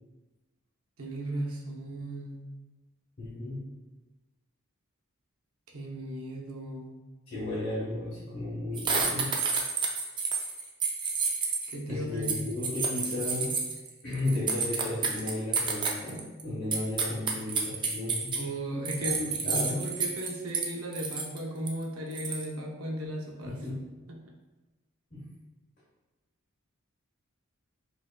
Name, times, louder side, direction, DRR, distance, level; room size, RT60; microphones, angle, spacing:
voice 1, 1.0-2.4 5.7-6.9 11.7-12.5 18.3-23.6 24.1-24.2, equal, 90° right, 0 dB, 0.7 m, -36 dB
voice 2, 3.2-3.6 7.3-9.3 11.9-13.5 14.0-18.3 19.0-19.9 23.4-23.8 25.1-25.3, left 1 dB, 45° left, -9 dB, 1.1 m, -34 dB
sound 1, 8.8-11.7 12.2-16.4 16.7-18.4 18.9-20.7 20.9-21.4 21.7-21.8 22.1-22.4, right 5 dB, 20° right, 0.4 m, -30 dB
5.1 x 2.6 x 2.2 m, 1.1 s
head